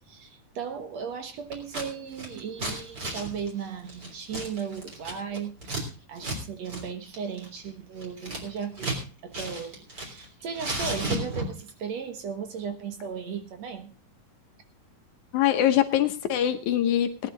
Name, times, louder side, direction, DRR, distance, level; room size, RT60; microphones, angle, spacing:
voice 1, 0.1-14.0, right 6 dB, 60° right, 7 dB, 2.2 m, -36 dB
Scissors, 1.5-1.9 2.1-5.8 6.2-6.4 6.7-6.8 7.1-9.0 9.3-10.3 10.5-11.7, right 2 dB, 30° right, 3.8 m, -33 dB
voice 2, 15.3-17.3, left 11 dB, 70° left, 8 dB, 2.2 m, -23 dB
17.5 x 10.5 x 3.9 m, 0.32 s
omnidirectional pair, 3.8 m